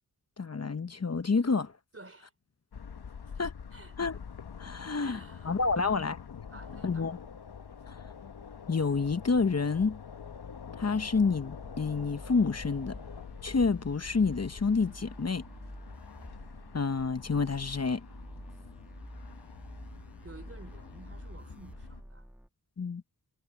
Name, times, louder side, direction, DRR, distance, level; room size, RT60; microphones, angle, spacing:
voice 1, 0.4-1.7 3.4-3.5 4.0-4.2 4.6-6.2 6.8-7.2 7.9-8.0 8.7-10.0 10.8-13.0 13.4-15.4 16.7-18.0 22.8-23.0, left 4 dB, 40° left, 0.9 m, -28 dB
voice 2, 1.9-2.3 3.7-4.0 5.0-6.1 6.5-7.1 20.2-22.3, right 2 dB, 35° right, 3.6 m, -51 dB
sound 1, 2.7-22.0, left 6 dB, 70° left, 1.1 m, -46 dB
sound 2, 11.1-22.5, equal, 5° right, 1.3 m, -48 dB
cardioid pair, 45°, 40 cm